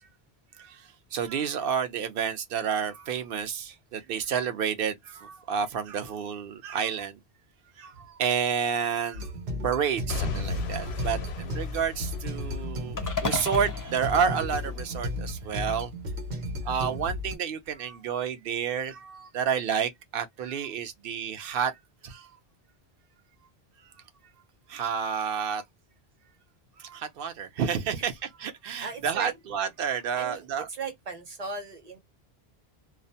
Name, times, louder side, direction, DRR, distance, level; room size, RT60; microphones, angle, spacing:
voice 1, 0.6-7.2 7.8-9.3 9.6-15.9 16.6-21.7 22.0-22.3 24.7-25.6 26.8-30.7, right 7 dB, 65° right, 0.8 m, -30 dB
sound 1, 9.1-17.4, left 1 dB, 90° right, 1.0 m, -34 dB
Boom / Shatter / Crushing, 10.1-14.1 14.6-14.7, left 5 dB, 80° left, 0.8 m, -36 dB
voice 2, 11.0-11.3 27.9-28.1 28.8-29.4 30.2-32.0, right 4 dB, 40° right, 0.9 m, -38 dB
sound 2, 13.0-15.3, left 4 dB, 30° left, 0.4 m, -35 dB
2.3 x 2.1 x 2.6 m
omnidirectional pair, 1.1 m